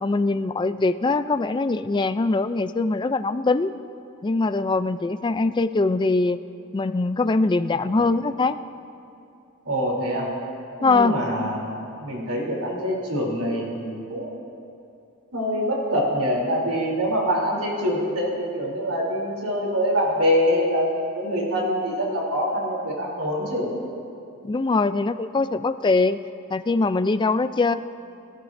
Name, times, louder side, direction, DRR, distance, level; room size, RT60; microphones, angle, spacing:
voice 1, 0.0-3.7 4.2-6.4 6.7-8.6 10.8-11.2 24.4-26.2 26.5-27.8, left 3 dB, 20° left, 11 dB, 0.3 m, -22 dB
voice 2, 9.6-10.3 10.8-14.3 15.3-23.7, equal, 85° right, -3 dB, 3.2 m, -25 dB
24.5 x 13.0 x 2.6 m, 2.6 s
head